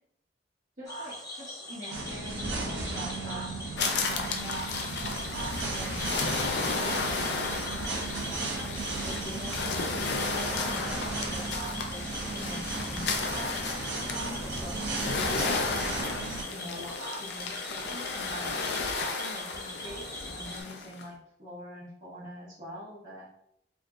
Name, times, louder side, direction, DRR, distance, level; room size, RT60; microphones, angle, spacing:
Cricket / Frog, 0.8-20.6, left 1 dB, 20° left, 0.7 m, -41 dB
voice 1, 0.8-3.6 4.1-6.5 6.8-7.6 8.3-13.6 14.1-16.1 16.5-18.6 19.2-23.2, equal, 45° right, -14 dB, 1.3 m, -44 dB
sound 1, 1.9-16.4, right 3 dB, 80° right, 0.7 m, -35 dB
sound 2, 3.8-21.0, left 4 dB, 70° left, 0.5 m, -34 dB
3.5 x 2.5 x 2.4 m, 0.74 s
head